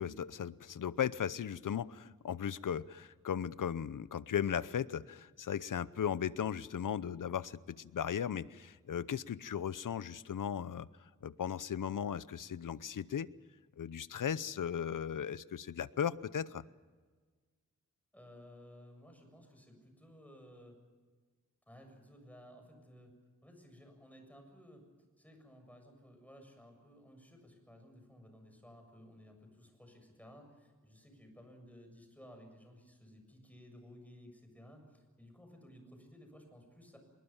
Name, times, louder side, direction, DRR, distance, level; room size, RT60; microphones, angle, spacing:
voice 1, 0.0-13.3 13.8-16.6, left 8 dB, 85° left, 17 dB, 0.8 m, -37 dB
voice 2, 18.1-20.8 21.7-23.1 23.4-24.8 25.2-37.0, equal, 5° left, 4 dB, 7.3 m, -56 dB
25.0 x 22.0 x 7.3 m, 1.5 s
wide cardioid pair, 90°, 31 cm